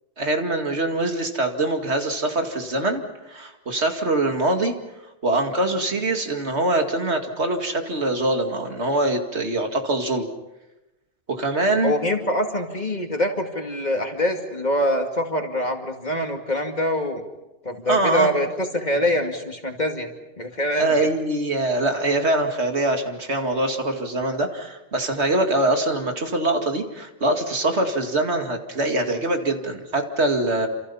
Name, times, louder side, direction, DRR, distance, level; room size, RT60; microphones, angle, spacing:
voice 1, 0.2-4.8 5.2-10.3 11.3-11.9 17.9-18.3 20.8-30.7, right 2 dB, 70° right, 4 dB, 2.6 m, -23 dB
voice 2, 11.8-17.2 17.6-20.1 20.4-20.9, left 1 dB, 40° left, 4 dB, 2.5 m, -24 dB
28.5 x 27.5 x 5.7 m, 0.99 s
omnidirectional pair, 1.2 m